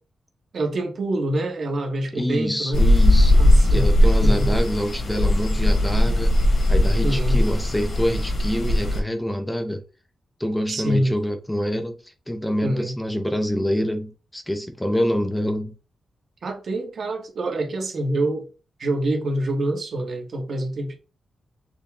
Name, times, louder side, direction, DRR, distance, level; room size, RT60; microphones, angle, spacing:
voice 1, 0.5-2.9 3.4-3.9 4.2-4.5 7.0-7.4 10.7-11.1 12.6-12.9 16.4-18.5 18.8-20.9, right 1 dB, 55° right, 1.2 m, -26 dB
voice 2, 2.1-6.4 6.7-9.8 10.4-15.8, equal, 5° left, 0.6 m, -26 dB
sound 1, 2.7-9.0, left 1 dB, 50° left, 1.5 m, -18 dB
6.6 x 2.2 x 3.5 m
wide cardioid pair, 135°, 0 cm